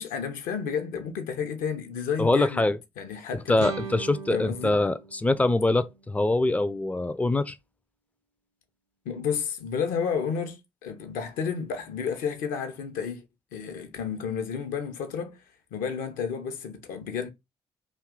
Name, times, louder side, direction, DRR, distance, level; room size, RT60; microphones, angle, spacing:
voice 1, 0.0-2.7 3.0-3.7 4.3-4.8 9.0-13.2 13.5-15.4 15.7-17.3, left 6 dB, 65° left, 0.6 m, -31 dB
voice 2, 2.2-2.8 3.5-7.6, left 2 dB, 10° left, 0.3 m, -24 dB
sound 1, 3.6-6.6, right 6 dB, 85° right, 0.4 m, -40 dB
2.7 x 2.3 x 3.6 m
figure-of-eight pair, 40°, 15 cm